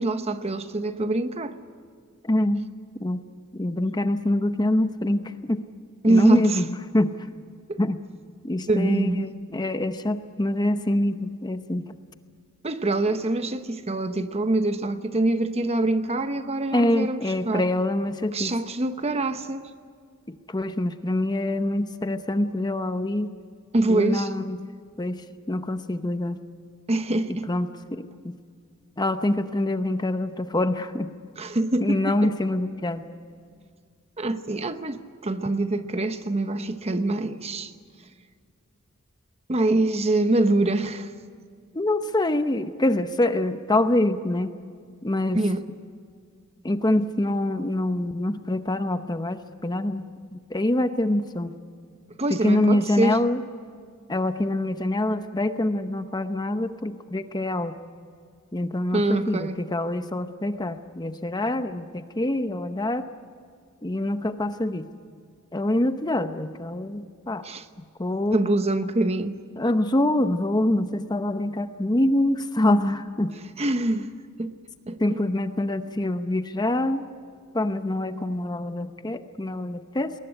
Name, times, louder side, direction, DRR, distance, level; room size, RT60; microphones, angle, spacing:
voice 1, 0.0-1.6 6.0-6.6 7.7-7.8 8.7-9.3 12.6-17.7 18.3-19.7 23.7-24.3 26.9-27.5 31.4-32.3 34.2-37.7 39.5-41.1 45.3-45.6 52.2-53.2 58.9-59.6 67.4-67.7 68.3-69.4 73.6-74.1 74.4-74.5 74.9-75.2, right 2 dB, 30° right, 0.9 m, -25 dB
voice 2, 2.2-2.6 3.0-3.2 3.5-5.6 6.1-7.1 7.8-8.0 8.4-12.0 16.7-18.5 20.3-23.3 23.9-24.6 25.0-25.2 25.5-26.4 27.5-28.3 29.0-31.1 31.8-33.0 41.7-44.5 45.0-45.4 46.6-50.1 50.3-51.5 52.3-53.4 54.1-57.7 58.5-63.1 63.8-64.9 65.5-67.4 68.0-68.4 69.6-73.3 75.0-77.0 77.5-80.1, left 1 dB, 20° left, 0.8 m, -25 dB
20.5 x 19.5 x 10.0 m
head